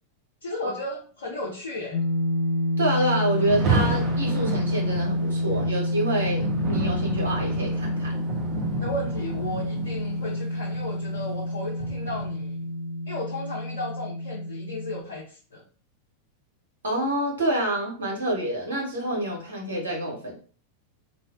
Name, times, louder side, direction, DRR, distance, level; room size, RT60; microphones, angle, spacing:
voice 1, 0.4-2.0 8.7-12.7 13.1-15.6, left 1 dB, 65° left, -3 dB, 0.5 m, -34 dB
sound 1, 1.9-15.0, left 1 dB, 5° left, 0.8 m, -28 dB
voice 2, 2.8-8.1 16.8-20.4, right 1 dB, 70° right, -3 dB, 1.1 m, -27 dB
Rain, 3.3-12.4, right 4 dB, 35° right, 0.5 m, -32 dB
2.4 x 2.1 x 2.5 m, 0.40 s
figure-of-eight pair, 90°, 0 cm